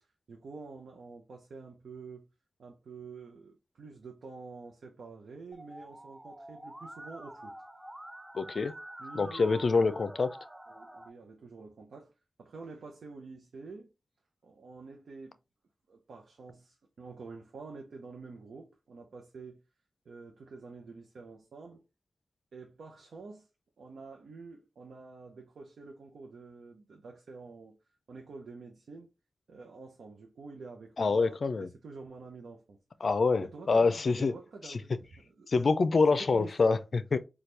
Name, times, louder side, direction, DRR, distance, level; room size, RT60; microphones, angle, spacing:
voice 1, 0.3-2.3 2.6-7.5 9.0-10.0 10.7-12.1 12.4-13.9 14.4-15.4 15.9-19.6 20.1-21.8 22.5-23.5 23.8-27.8 28.1-29.1 29.5-32.8 33.4-34.9 35.2-35.5 36.1-36.8, right 4 dB, 85° right, 0.6 m, -48 dB
Musical instrument, 5.5-11.1, right 1 dB, 15° right, 0.4 m, -47 dB
voice 2, 8.3-8.7 9.1-10.3 31.0-31.7 33.0-34.3 34.6-34.8 35.5-37.2, left 4 dB, 65° left, 0.4 m, -26 dB
4.2 x 2.3 x 3.2 m
cardioid pair, 50°, 0 cm